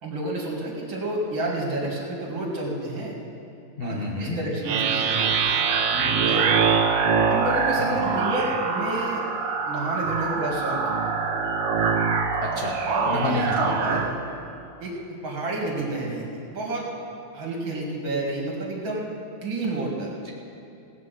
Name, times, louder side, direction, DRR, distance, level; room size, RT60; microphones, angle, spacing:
voice 1, 0.0-3.2 3.8-5.5 5.9-6.5 7.3-9.2 9.7-10.8 12.9-14.2 14.8-16.9 17.3-19.1 19.4-20.1, right 2 dB, 60° right, -2 dB, 2.9 m, -30 dB
voice 2, 3.8-4.4 7.8-8.0 12.4-12.8 13.1-13.7, left 2 dB, 40° left, -3 dB, 0.8 m, -29 dB
sound 1, 4.6-14.1, right 5 dB, 90° right, 1.9 m, -24 dB
18.5 x 6.2 x 7.6 m, 2.7 s
omnidirectional pair, 2.4 m